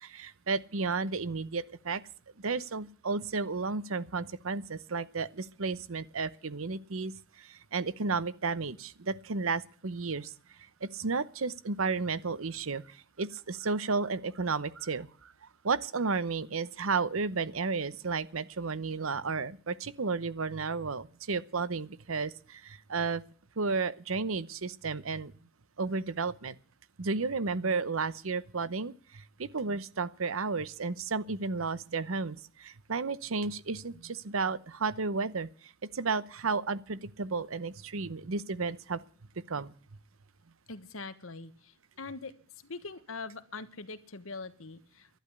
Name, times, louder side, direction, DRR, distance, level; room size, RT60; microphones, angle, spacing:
voice 1, 0.0-2.0 2.4-7.1 7.4-10.3 10.8-15.3 15.6-23.2 23.6-25.3 25.8-26.5 27.0-35.5 35.9-39.0 39.5-39.7, right 4 dB, 85° right, 0.9 m, -33 dB
voice 2, 40.7-42.3 42.6-45.1, left 3 dB, 85° left, 1.4 m, -43 dB
11.5 x 10.5 x 8.1 m
head